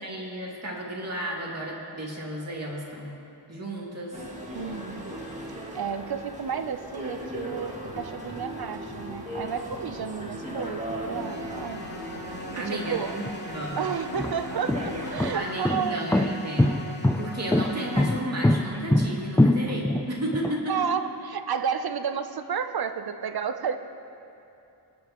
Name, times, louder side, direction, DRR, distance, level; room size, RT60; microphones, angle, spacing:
voice 1, 0.0-3.1 3.5-4.2 12.5-13.8 15.3-16.8 17.2-20.7, right 1 dB, 35° right, -4 dB, 2.4 m, -33 dB
sound 1, 4.1-15.3, equal, 15° right, 1.9 m, -37 dB
voice 2, 4.5-5.2 5.7-11.8 12.6-13.1 13.8-16.2 20.7-23.8, right 7 dB, 60° right, 9 dB, 0.7 m, -31 dB
sound 2, 11.2-18.2, equal, 25° left, 1.0 m, -40 dB
sound 3, 13.2-13.3 14.0-20.5, left 1 dB, 5° left, 0.3 m, -23 dB
24.5 x 9.6 x 3.1 m, 2.7 s
wide cardioid pair, 140°, 42 cm